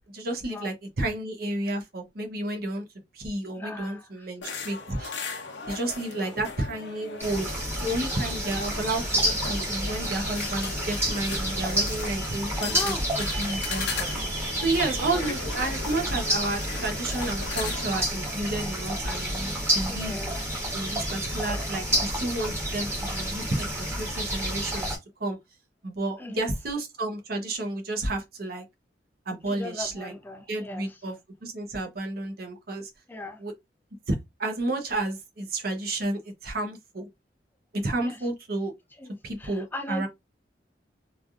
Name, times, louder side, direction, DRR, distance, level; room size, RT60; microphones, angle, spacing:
voice 1, 0.1-2.8 3.1-5.2 5.7-12.9 13.4-14.1 14.6-20.2 20.7-25.4 25.8-28.6 29.3-30.1 30.5-31.1 31.4-32.9 33.4-33.5 34.1-34.2 34.4-37.1 37.7-38.7 39.2-40.1, right 2 dB, 55° right, 0.9 m, -31 dB
voice 2, 3.5-4.3 6.2-6.4 12.7-13.1 19.7-20.4 26.2-26.5 29.5-31.0 33.1-33.4 38.0-38.2 39.0-39.1 39.4-40.1, left 2 dB, 10° left, 0.3 m, -38 dB
sound 1, 4.4-18.0, left 5 dB, 80° left, 0.7 m, -38 dB
sound 2, 7.2-25.0, right 1 dB, 15° right, 1.1 m, -30 dB
3.3 x 2.6 x 2.3 m
head